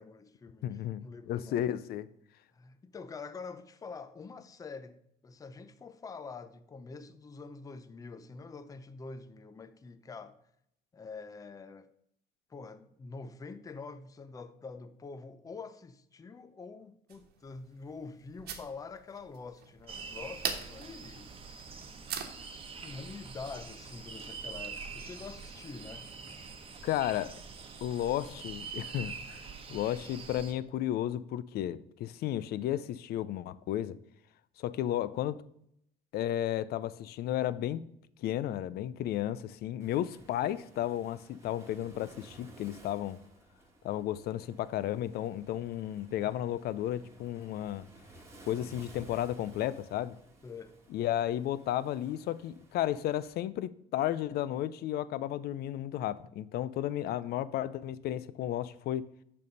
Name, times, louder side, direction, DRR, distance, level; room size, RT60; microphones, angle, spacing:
voice 1, 0.0-1.6 2.5-10.4 10.9-11.9 12.5-21.3 22.8-26.1 29.5-30.0 50.4-50.8 57.0-57.3, left 4 dB, 20° left, 0.5 m, -46 dB
voice 2, 0.6-2.1 26.8-27.4 27.8-29.4 29.7-34.0 34.6-35.4 36.1-37.9 38.2-43.2 43.8-47.9 48.5-50.2 50.9-59.1, left 12 dB, 70° left, 0.5 m, -33 dB
sound 1, 17.1-22.6, right 7 dB, 70° right, 1.2 m, -42 dB
sound 2, 19.9-30.5, right 5 dB, 35° right, 1.0 m, -45 dB
Waves surf, 39.8-53.4, right 2 dB, 15° right, 1.5 m, -56 dB
6.7 x 5.4 x 5.3 m
cardioid pair, 110°, 17 cm